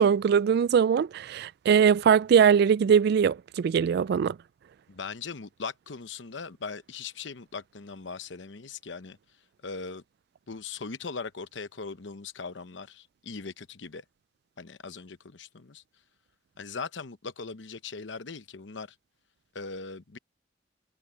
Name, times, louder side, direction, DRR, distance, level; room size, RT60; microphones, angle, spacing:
voice 1, 0.0-4.4, right 7 dB, 60° right, 0.3 m, -21 dB
voice 2, 4.9-9.2 9.6-10.0 10.5-14.0 14.6-15.8 16.6-18.9 19.5-20.2, left 4 dB, 70° left, 0.9 m, -39 dB
head